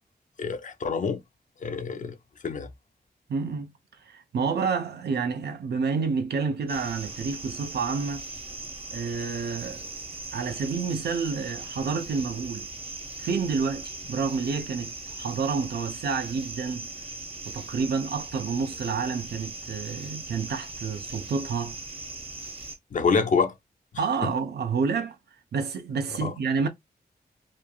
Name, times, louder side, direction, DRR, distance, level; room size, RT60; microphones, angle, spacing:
voice 1, 0.4-1.2 1.6-2.1 2.4-2.7 22.9-23.5 26.2-26.3, left 5 dB, 50° left, 0.4 m, -26 dB
voice 2, 3.3-8.3 8.9-9.9 10.3-12.7 13.2-16.9 17.4-21.8 24.0-25.2 25.5-26.7, right 5 dB, 85° right, 0.5 m, -29 dB
sound 1, 6.7-22.8, right 3 dB, 35° right, 0.8 m, -39 dB
3.1 x 2.3 x 2.2 m
wide cardioid pair, 140°, 17 cm